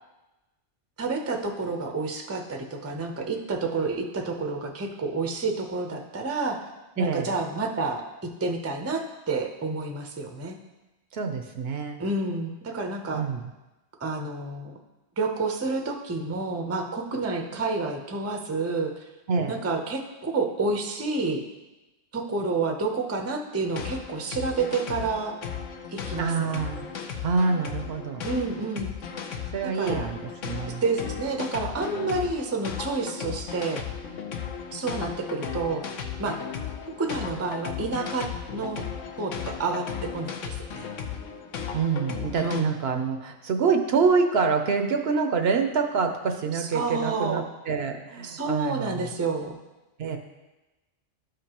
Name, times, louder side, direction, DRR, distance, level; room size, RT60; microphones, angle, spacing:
voice 1, 1.0-6.6 7.0-10.6 12.0-13.2 14.0-14.7 15.2-19.0 19.5-21.4 22.1-25.4 25.9-26.6 28.2-28.9 29.6-30.1 30.7-33.8 34.7-35.8 36.2-36.4 37.0-38.3 38.5-38.8 39.2-40.9 42.4-42.8 46.5-47.4 48.2-49.6, right 3 dB, 20° right, 3 dB, 0.4 m, -29 dB
voice 2, 7.0-7.3 11.1-12.0 13.1-13.4 19.3-19.6 26.2-26.8 27.2-28.2 29.5-30.8 41.7-49.1 50.0-50.2, right 5 dB, 65° right, 6 dB, 0.8 m, -26 dB
sound 1, 23.6-42.6, left 7 dB, 90° left, 1.1 m, -36 dB
12.5 x 5.1 x 2.9 m, 1.1 s
omnidirectional pair, 1.3 m